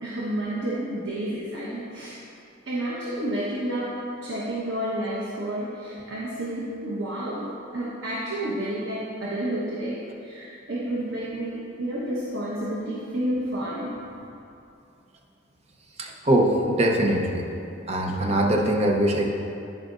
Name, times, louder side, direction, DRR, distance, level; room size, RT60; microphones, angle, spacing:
voice 1, 0.0-2.2 2.7-14.0, right 1 dB, 85° right, -6 dB, 1.1 m, -30 dB
voice 2, 16.0-17.4 17.9-19.3, right 1 dB, 35° right, 1 dB, 0.8 m, -22 dB
14.5 x 5.0 x 2.5 m, 2.7 s
head